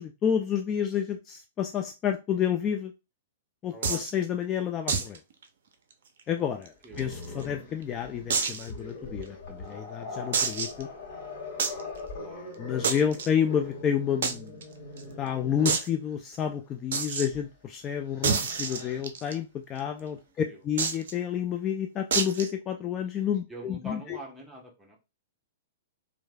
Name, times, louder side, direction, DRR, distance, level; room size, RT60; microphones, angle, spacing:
voice 1, 0.0-2.9 3.6-5.2 6.3-10.9 12.6-14.5 15.2-24.2, left 8 dB, 25° left, 5 dB, 0.3 m, -30 dB
voice 2, 3.7-4.3 6.8-7.0 12.1-12.9 19.9-20.0 20.5-20.6 23.5-25.0, left 1 dB, 5° right, -1 dB, 0.9 m, -45 dB
sound 1, 3.8-4.1 4.9-5.2 5.4-5.5 5.9-6.0 6.7-7.4 8.3-8.7 9.2-9.3 10.3-10.8 11.6-11.8 12.8-13.3 14.2-14.3 14.6-14.7 15.0-15.1 15.6-15.9 16.9-17.3 18.2-19.3 20.8-21.1 22.1-22.5, right 5 dB, 60° right, 0.5 m, -28 dB
Growling, 6.9-15.9 17.3-17.5 17.9-19.0, left 3 dB, 45° left, 1.4 m, -41 dB
3.1 x 2.5 x 2.2 m, 0.26 s
figure-of-eight pair, 110°, 0 cm